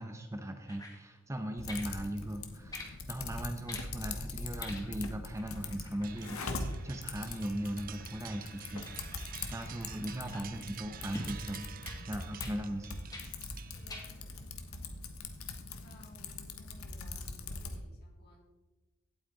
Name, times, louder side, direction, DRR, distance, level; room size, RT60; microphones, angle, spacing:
voice 1, 0.0-13.0, right 1 dB, 15° right, 6 dB, 0.8 m, -39 dB
sound 1, 0.7-1.0 1.7-1.9 2.7-2.9 3.7-3.9 4.6-5.1 5.4-10.5 11.1-11.3 11.8-12.0 12.4-12.6 13.1-13.3 13.9-14.1 14.7-14.8, left 1 dB, 15° left, 2.0 m, -48 dB
Typing, 1.6-17.8, left 3 dB, 85° left, 1.4 m, -42 dB
sound 2, 6.0-14.2, right 11 dB, 40° right, 0.5 m, -50 dB
voice 2, 13.6-14.6 15.8-18.4, left 1 dB, 50° left, 0 dB, 3.3 m, -60 dB
17.0 x 8.4 x 3.9 m, 1.1 s
head